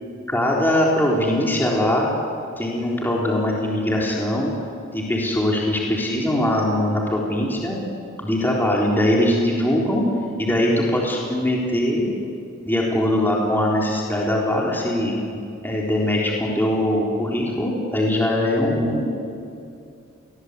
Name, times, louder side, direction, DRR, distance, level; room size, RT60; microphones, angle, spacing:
voice 1, 0.3-2.1 2.6-4.5 4.9-7.8 8.2-10.0 10.4-12.1 12.6-15.1 15.6-19.2, left 1 dB, 10° left, -3 dB, 3.9 m, -21 dB
28.5 x 22.0 x 8.3 m, 2.5 s
head